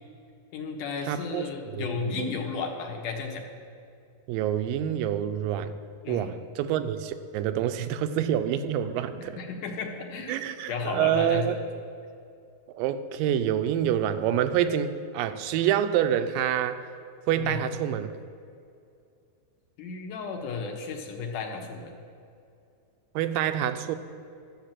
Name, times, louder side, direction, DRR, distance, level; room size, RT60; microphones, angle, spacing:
voice 1, 0.5-3.4 6.0-6.4 9.2-10.4 10.7-11.6 17.4-17.6 19.8-21.9, left 5 dB, 65° left, 3 dB, 2.4 m, -33 dB
voice 2, 1.1-1.9 2.2-2.3 4.3-5.7 6.1-9.4 10.3-11.6 12.7-16.8 17.3-18.1 23.2-24.0, right 10 dB, 80° right, 10 dB, 2.2 m, -27 dB
13.0 x 7.3 x 7.5 m, 2.4 s
omnidirectional pair, 4.3 m